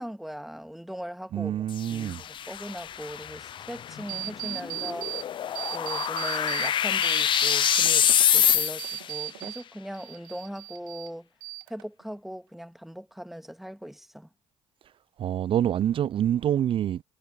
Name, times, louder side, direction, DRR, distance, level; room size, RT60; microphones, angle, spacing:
voice 1, 0.0-5.1 5.7-8.1 8.3-11.3 11.7-14.3, equal, ahead, 2.1 m, -39 dB
voice 2, 1.3-2.2 15.2-17.0, right 10 dB, 50° right, 0.5 m, -26 dB
sound 1, 1.7-9.1, left 10 dB, 45° left, 0.4 m, -26 dB
sound 2, 4.1-5.2 5.5-6.7 7.0-9.6 9.9-11.1 11.4-12.0, right 17 dB, 85° right, 2.3 m, -36 dB
hypercardioid pair, 55°, 12 cm